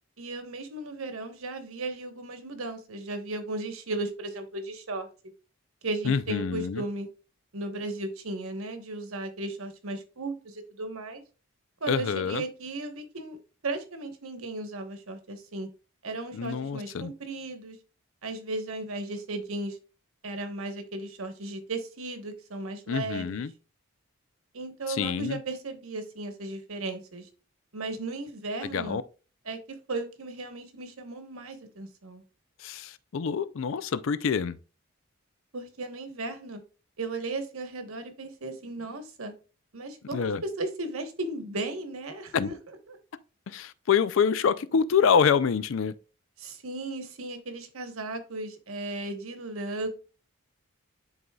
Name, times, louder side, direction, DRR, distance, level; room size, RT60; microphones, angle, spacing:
voice 1, 0.2-5.1 5.8-7.1 7.5-11.2 11.8-13.4 13.6-15.7 16.0-17.8 18.2-19.8 20.2-23.4 24.5-27.3 27.7-29.0 29.5-29.6 29.9-32.2 35.5-36.6 37.0-39.3 39.7-42.5 42.9-43.0 46.4-50.0, right 2 dB, 80° right, 1.1 m, -35 dB
voice 2, 6.0-6.8 11.9-12.4 16.3-17.1 22.9-23.5 24.9-25.4 28.6-29.0 32.6-34.6 40.1-40.4 42.3-42.5 43.5-45.9, left 6 dB, 65° left, 0.4 m, -26 dB
10.5 x 4.0 x 2.3 m
head